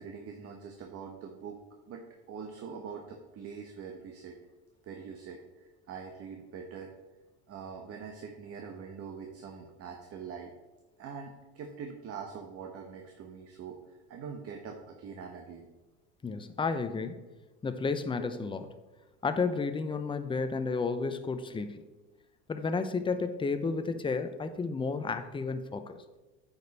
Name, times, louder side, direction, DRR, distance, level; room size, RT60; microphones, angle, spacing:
voice 1, 0.0-1.6 1.9-4.4 4.8-7.0 7.5-10.5 11.0-15.7, right 6 dB, 40° right, 2 dB, 1.1 m, -43 dB
voice 2, 16.2-17.2 17.6-18.7 19.2-21.8 22.5-26.0, left 4 dB, 15° left, 9 dB, 0.6 m, -32 dB
9.1 x 5.4 x 4.1 m, 1.2 s
supercardioid pair, 95°, 35 cm